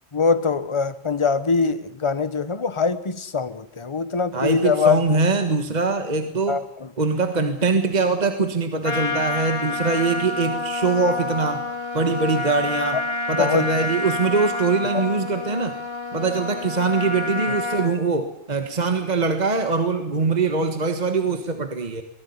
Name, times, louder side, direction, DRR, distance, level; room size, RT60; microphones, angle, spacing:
voice 1, 0.1-5.2 6.5-6.9 13.4-13.7 14.9-15.0, left 5 dB, 25° left, 13 dB, 1.1 m, -23 dB
voice 2, 4.3-6.6 7.0-11.6 11.9-13.0 13.3-15.8 16.1-22.0, right 4 dB, 30° right, 7 dB, 1.7 m, -22 dB
Trumpet, 8.8-17.9, left 3 dB, 45° left, 2.5 m, -28 dB
23.0 x 18.5 x 9.6 m, 0.75 s
omnidirectional pair, 1.4 m